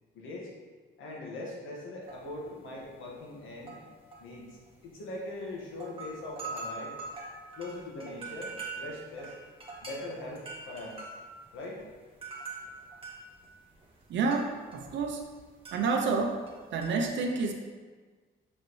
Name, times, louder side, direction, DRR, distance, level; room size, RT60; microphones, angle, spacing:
voice 1, 0.1-0.5 1.0-3.8 4.2-7.0 7.6-9.3 9.8-11.1 11.5-11.8, left 2 dB, 80° left, -3 dB, 1.7 m, -41 dB
sound 1, 2.1-2.5 2.8-3.0 3.5-4.9 5.5-5.6 5.7-15.4 15.6-17.0, right 3 dB, 25° right, 1.6 m, -43 dB
voice 2, 14.1-15.3 15.7-16.4 16.7-17.5, right 4 dB, 70° right, 3 dB, 0.7 m, -29 dB
6.5 x 5.5 x 3.2 m, 1.5 s
cardioid pair, 90°, 20 cm